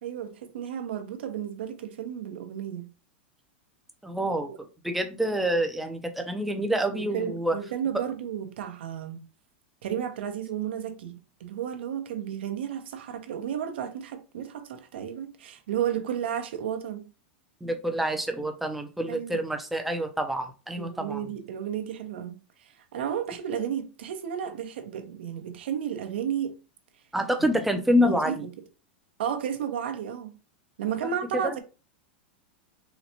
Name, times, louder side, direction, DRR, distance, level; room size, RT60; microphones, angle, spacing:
voice 1, 0.0-2.9 4.5-4.6 6.9-9.3 9.8-17.1 19.1-19.4 20.8-26.6 27.4-27.6 28.0-28.5 29.2-30.4 30.8-31.6, right 9 dB, 80° right, 0.7 m, -33 dB
voice 2, 4.0-4.5 4.8-7.6 17.6-21.3 27.1-28.5 31.4-31.6, equal, 5° right, 0.4 m, -27 dB
4.0 x 2.1 x 2.8 m
supercardioid pair, 165°, 6 cm